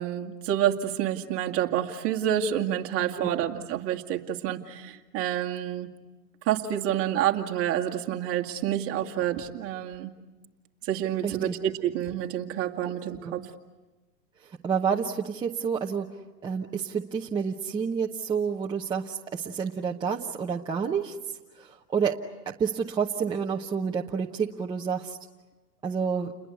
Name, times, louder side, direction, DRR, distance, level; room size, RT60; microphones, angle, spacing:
voice 1, 0.0-5.9 6.5-10.1 10.8-13.4, right 11 dB, 30° right, 3 dB, 2.2 m, -28 dB
voice 2, 11.2-11.6 12.8-12.9 13.2-13.3 14.4-16.1 16.4-21.2 21.5-22.2 22.5-25.2 25.8-26.3, right 6 dB, 10° right, -1 dB, 0.8 m, -29 dB
30.0 x 21.5 x 8.2 m, 1.2 s
hypercardioid pair, 145°, 49 cm